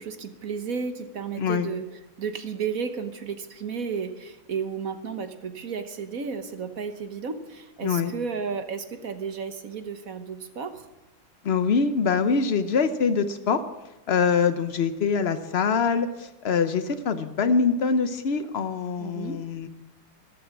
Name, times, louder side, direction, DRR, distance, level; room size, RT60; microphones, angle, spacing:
voice 1, 0.0-10.9 19.0-19.4, right 6 dB, 50° right, 9 dB, 1.3 m, -33 dB
voice 2, 1.4-1.7 7.8-8.1 11.4-13.6 14.1-19.7, left 5 dB, 80° left, 10 dB, 0.5 m, -24 dB
13.5 x 12.5 x 7.2 m, 1.0 s
omnidirectional pair, 2.2 m